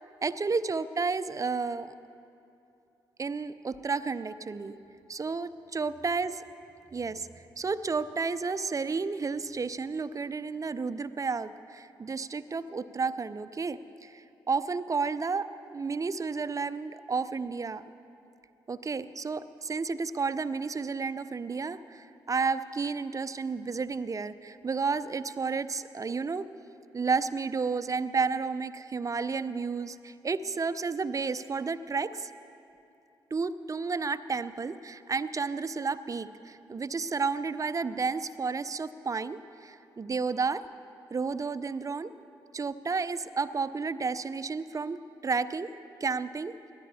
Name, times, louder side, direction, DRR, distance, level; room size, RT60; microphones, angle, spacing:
voice 1, 0.2-1.9 3.2-4.8 5.1-6.3 6.9-17.8 18.7-26.5 26.9-32.3 33.3-40.6 41.1-42.1 42.5-45.7 46.0-46.5, right 4 dB, 30° right, 13 dB, 0.6 m, -32 dB
22.5 x 16.5 x 2.9 m, 2.7 s
hypercardioid pair, 40°, 11 cm